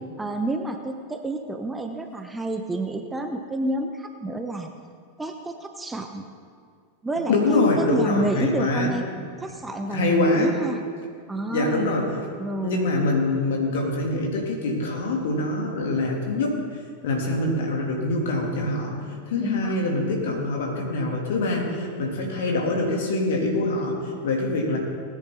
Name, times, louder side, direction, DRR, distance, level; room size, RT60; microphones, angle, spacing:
voice 1, 0.2-4.7 5.2-6.3 7.0-9.0 9.4-10.8 11.3-11.9 12.4-12.9 19.4-19.9, right 2 dB, 10° right, 5 dB, 1.0 m, -29 dB
voice 2, 7.3-8.9 9.9-10.5 11.5-12.1 12.6-16.6 17.0-19.0 19.3-24.8, left 2 dB, 55° left, 0 dB, 3.0 m, -24 dB
19.5 x 10.5 x 4.1 m, 2.1 s
figure-of-eight pair, 90°, 0 cm